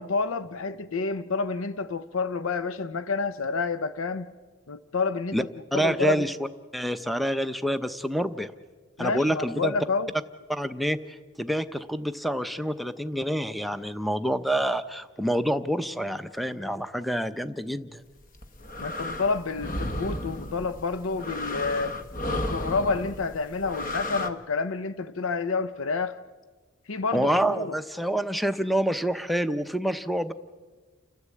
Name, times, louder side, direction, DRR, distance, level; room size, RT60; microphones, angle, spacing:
voice 1, 0.0-4.3 4.7-5.4 5.7-6.2 9.0-10.1 18.8-22.0 22.3-26.2 26.9-27.7, left 4 dB, 80° left, 0.7 m, -29 dB
voice 2, 5.7-6.4 6.7-8.5 9.0-9.7 10.5-18.0 27.1-30.3, equal, ahead, 0.6 m, -27 dB
sound 1, 18.2-24.3, left 1 dB, 40° left, 1.2 m, -33 dB
29.5 x 13.0 x 8.4 m
head